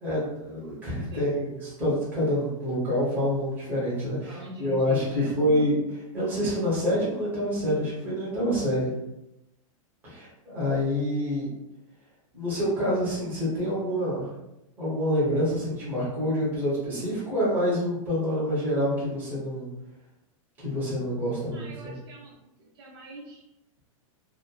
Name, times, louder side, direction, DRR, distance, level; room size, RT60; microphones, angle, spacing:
voice 1, 0.0-5.8 6.1-8.9 10.0-11.5 12.3-14.3 14.8-19.7 20.6-22.0, equal, 10° right, -9 dB, 0.9 m, -27 dB
voice 2, 0.9-1.5 4.3-5.7 21.5-22.3 22.6-23.4, equal, 45° right, -4 dB, 0.5 m, -42 dB
2.9 x 2.0 x 2.2 m, 0.90 s
supercardioid pair, 175°, 18 cm